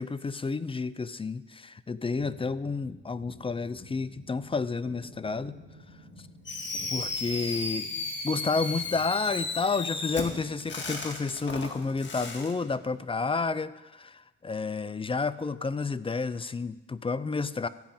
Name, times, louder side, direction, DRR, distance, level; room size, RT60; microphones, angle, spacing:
voice 1, 0.0-5.6 6.9-7.9 8.2-17.7, left 4 dB, 20° left, 15 dB, 0.5 m, -30 dB
sound 1, 2.1-13.0, equal, 50° right, 3.7 m, -52 dB
Fireworks, 6.5-12.5, left 3 dB, 40° left, 2.1 m, -34 dB
14.5 x 5.2 x 8.8 m, 1.0 s
cardioid pair, 90°, 30 cm